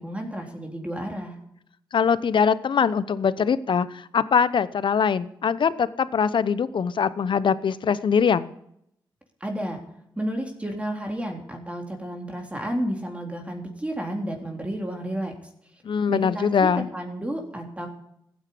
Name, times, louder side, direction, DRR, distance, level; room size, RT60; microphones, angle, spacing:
voice 1, 0.0-1.4 9.4-9.8 10.2-15.4 16.1-17.9, right 1 dB, 15° right, 2 dB, 3.6 m, -31 dB
voice 2, 1.9-8.5 15.8-16.9, left 6 dB, 70° left, 16 dB, 0.8 m, -22 dB
15.0 x 9.7 x 8.6 m, 0.74 s
cardioid pair, 50°, 9 cm